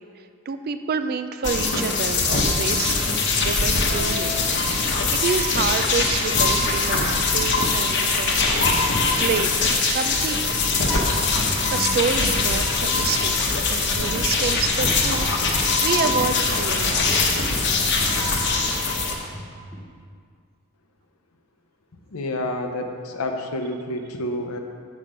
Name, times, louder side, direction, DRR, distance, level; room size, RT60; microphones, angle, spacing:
voice 1, 0.0-3.0 3.4-4.4 4.6-4.8 5.1-8.3 9.2-10.5 11.7-13.4 13.7-15.3 15.8-17.2, right 5 dB, 45° right, 9 dB, 0.3 m, -28 dB
sound 1, 1.4-19.1, left 3 dB, 50° left, 1.0 m, -22 dB
sound 2, 3.2-3.7 4.0-4.5 5.7-6.7 7.9-8.9 9.2-12.2 13.2-13.4 13.9-14.2 14.6-14.8 15.3-15.5 16.3-17.7 18.0-19.9, equal, 10° left, 0.7 m, -41 dB
sound 3, 3.9-5.7, left 3 dB, 65° right, 1.2 m, -37 dB
voice 2, 22.1-24.6, left 1 dB, 75° left, 5 dB, 0.7 m, -29 dB
7.4 x 6.2 x 5.0 m, 2.2 s
head